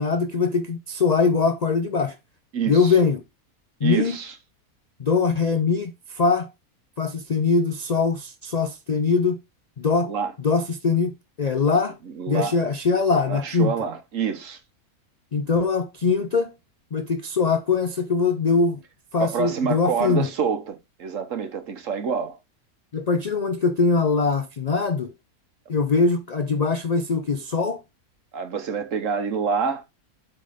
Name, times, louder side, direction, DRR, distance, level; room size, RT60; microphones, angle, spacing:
voice 1, 0.0-2.1 2.7-3.2 3.8-4.2 5.0-6.5 7.0-9.4 9.8-10.1 10.4-11.1 11.4-12.0 12.3-13.7 15.3-16.5 16.9-18.8 19.1-20.3 22.9-25.1 25.7-27.8, left 4 dB, 55° left, 0.4 m, -22 dB
voice 2, 2.5-2.9 3.8-4.3 10.0-10.3 12.0-12.6 13.3-14.6 19.2-22.4 28.3-29.8, right 6 dB, 60° right, 1.4 m, -27 dB
7.8 x 3.8 x 5.0 m
omnidirectional pair, 1.5 m